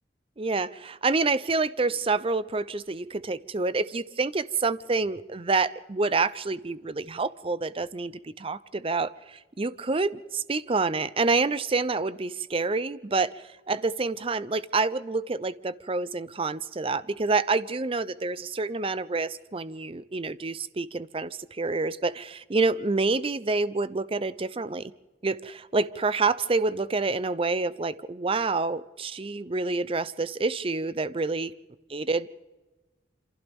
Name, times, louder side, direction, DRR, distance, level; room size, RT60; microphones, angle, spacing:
voice 1, 0.4-24.9 25.2-31.5 31.9-32.3, right 3 dB, 30° right, 16 dB, 0.6 m, -28 dB
27.5 x 26.5 x 3.6 m, 1.2 s
head